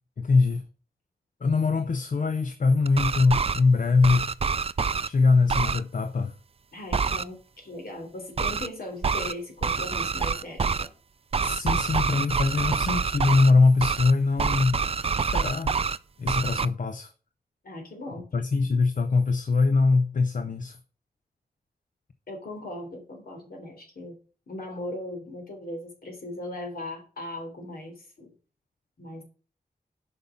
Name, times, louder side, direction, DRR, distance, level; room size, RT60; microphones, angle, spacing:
voice 1, 0.2-0.6 1.4-4.3 5.0-6.4 11.4-14.8 15.2-15.7 16.2-17.1 18.3-20.8, left 4 dB, 55° left, 0.7 m, -22 dB
sound 1, 2.9-3.6 4.0-5.1 5.5-5.8 6.9-7.2 8.4-8.7 9.0-9.3 9.6-10.9 11.3-13.5 13.8-14.1 14.4-16.0 16.3-16.7, right 5 dB, 40° right, 0.4 m, -26 dB
voice 2, 6.7-10.9 17.6-18.3 22.3-24.2 24.5-28.3 29.0-29.2, left 1 dB, 70° left, 3.5 m, -38 dB
7.9 x 5.6 x 7.2 m
wide cardioid pair, 125°, 16 cm